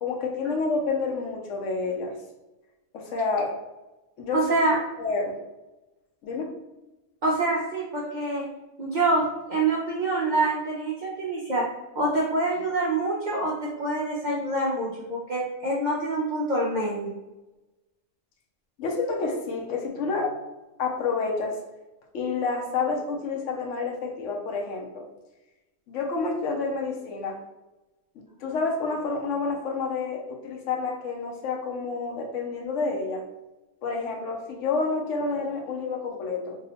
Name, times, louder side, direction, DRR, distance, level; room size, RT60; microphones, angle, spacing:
voice 1, 0.0-2.2 2.9-3.6 4.2-4.5 5.0-5.4 6.2-6.5 18.8-20.4 20.8-21.6 22.1-25.1 25.9-27.4 28.1-33.2 33.8-36.6, left 4 dB, 70° left, 1 dB, 0.9 m, -29 dB
voice 2, 4.3-4.7 7.2-8.4 8.8-11.6 12.0-17.1, right 2 dB, 65° right, -4 dB, 0.4 m, -26 dB
2.8 x 2.0 x 3.9 m, 1.0 s
omnidirectional pair, 1.4 m